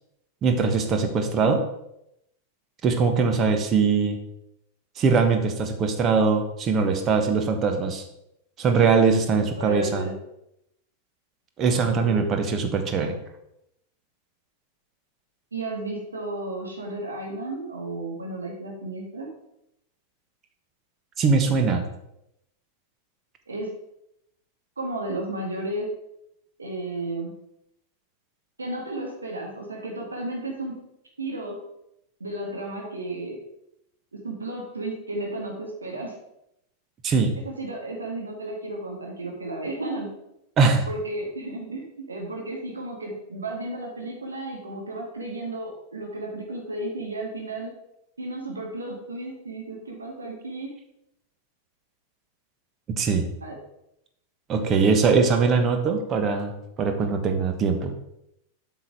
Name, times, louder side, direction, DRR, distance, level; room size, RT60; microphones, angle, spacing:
voice 1, 0.4-1.6 2.8-4.2 5.0-8.0 8.6-10.1 11.6-13.2 21.2-21.8 37.0-37.3 40.6-40.9 53.0-53.3 54.5-56.5 56.8-57.9, right 5 dB, 30° right, 6 dB, 1.3 m, -21 dB
voice 2, 9.6-10.1 11.7-12.3 15.5-19.3 23.5-23.7 24.8-25.9 26.6-27.3 28.6-30.8 31.2-31.6 32.2-33.4 34.1-36.2 37.5-40.1 40.9-47.7 48.2-50.7 53.4-53.6, right 2 dB, 75° right, 0 dB, 1.9 m, -33 dB
8.2 x 6.1 x 4.6 m, 0.81 s
figure-of-eight pair, 90°, 0 cm